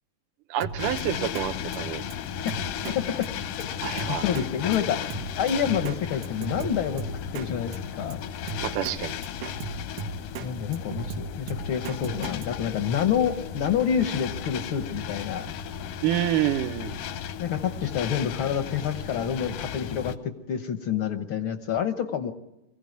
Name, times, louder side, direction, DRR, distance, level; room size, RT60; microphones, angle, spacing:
voice 1, 0.5-2.0 3.8-4.2 8.6-9.2 16.0-17.0, right 12 dB, 90° right, 8 dB, 2.6 m, -28 dB
Drum kit, 0.6-1.0 1.4-1.5 1.7-1.8 2.1-2.2 2.5-3.0 3.2-3.3 3.6-3.7 4.0-4.5 4.7-4.8 5.1-6.0 6.2-7.5 7.7-7.8 8.1-8.2 8.5-9.0 9.2-10.5 10.7-12.5, right 5 dB, 75° right, 2.3 m, -36 dB
sound 1, 0.8-20.2, left 8 dB, 85° left, 2.6 m, -35 dB
voice 2, 4.1-5.0 5.4-7.0 7.3-8.2 10.4-15.5 17.4-22.3, left 8 dB, 65° left, 9 dB, 1.3 m, -28 dB
24.0 x 16.0 x 9.4 m, 0.96 s
omnidirectional pair, 3.7 m